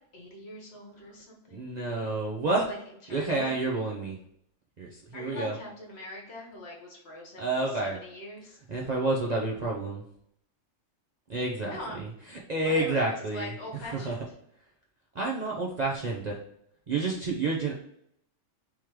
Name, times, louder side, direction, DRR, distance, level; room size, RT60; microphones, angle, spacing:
voice 1, 0.1-1.7 2.6-2.8 3.1-3.6 5.1-7.5 7.8-8.6 11.6-12.0 12.6-13.1 13.3-14.2, left 1 dB, 55° left, -1 dB, 1.3 m, -42 dB
voice 2, 1.5-2.7 3.1-4.2 4.8-5.5 7.4-8.0 8.7-10.0 11.3-13.5 13.9-14.2 15.1-16.4 16.9-17.7, right 2 dB, 45° right, -3 dB, 0.6 m, -29 dB
3.6 x 3.1 x 4.6 m, 0.70 s
omnidirectional pair, 1.4 m